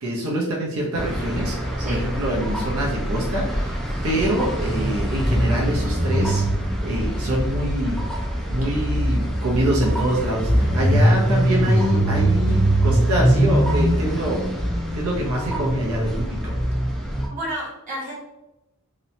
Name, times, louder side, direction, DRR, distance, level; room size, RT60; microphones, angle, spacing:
voice 1, 0.0-6.4 6.8-8.0 8.5-14.5 14.9-16.5, right 1 dB, 70° right, -4 dB, 0.6 m, -25 dB
sound 1, 0.9-17.3, right 1 dB, ahead, 0.3 m, -22 dB
voice 2, 17.3-18.2, right 1 dB, 35° right, -4 dB, 0.8 m, -32 dB
2.9 x 2.0 x 2.6 m, 0.93 s
head